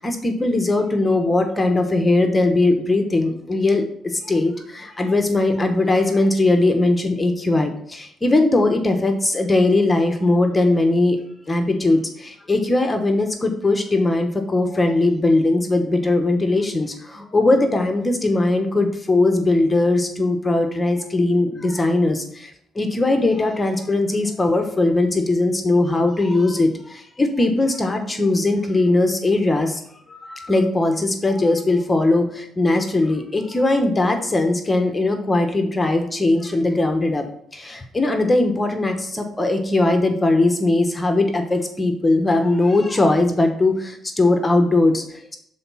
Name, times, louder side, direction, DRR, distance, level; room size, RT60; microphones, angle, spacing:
voice 1, 0.0-11.2 11.5-29.8 30.1-37.2 37.5-45.4, left 2 dB, 20° left, 5 dB, 1.1 m, -20 dB
6.8 x 4.1 x 5.5 m, 0.69 s
cardioid pair, 90°, 0 cm